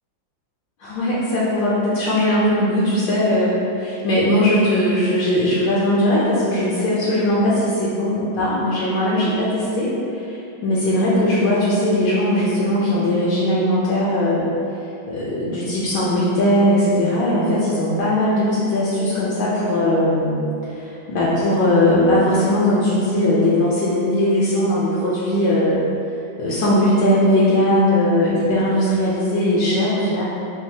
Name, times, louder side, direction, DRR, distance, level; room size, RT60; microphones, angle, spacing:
voice 1, 0.8-14.4 15.1-20.4 20.7-25.8 26.4-30.2, left 1 dB, 70° left, -8 dB, 1.2 m, -19 dB
4.5 x 2.4 x 2.7 m, 2.8 s
omnidirectional pair, 2.2 m